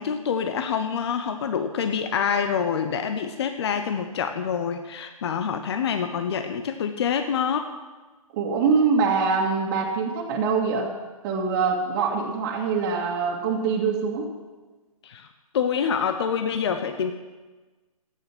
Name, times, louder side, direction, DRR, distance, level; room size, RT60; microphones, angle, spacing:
voice 1, 0.0-7.7 15.0-15.3 15.5-17.1, left 7 dB, 45° left, 7 dB, 0.9 m, -26 dB
voice 2, 8.3-10.9 11.2-14.3, right 5 dB, 30° right, 0 dB, 2.0 m, -24 dB
13.5 x 9.3 x 6.1 m, 1.2 s
hypercardioid pair, 150°, 19 cm